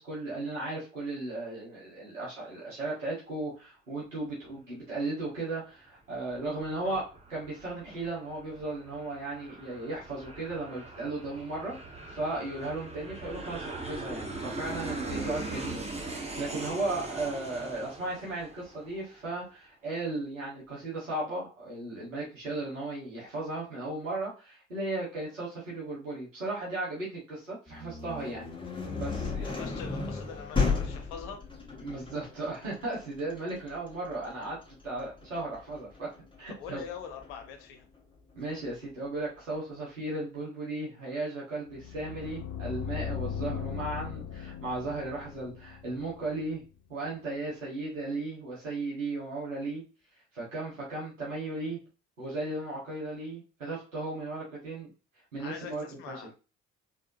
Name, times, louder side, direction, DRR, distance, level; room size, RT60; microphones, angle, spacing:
voice 1, 0.0-7.0 7.3-11.7 12.1-28.4 28.9-29.6 31.8-36.1 36.4-36.8 38.3-46.6 46.9-49.8 50.3-51.8 52.2-54.9 55.3-56.3, right 2 dB, 85° right, 1.8 m, -36 dB
Aircraft, 6.1-19.3, right 2 dB, 15° right, 1.3 m, -41 dB
sound 1, 27.7-37.4, left 4 dB, 15° left, 1.6 m, -34 dB
voice 2, 29.4-31.4 36.5-37.9 55.4-56.3, left 7 dB, 70° left, 1.1 m, -43 dB
sound 2, 41.7-46.6, left 8 dB, 45° left, 0.7 m, -38 dB
4.1 x 3.6 x 2.9 m
figure-of-eight pair, 45°, 37 cm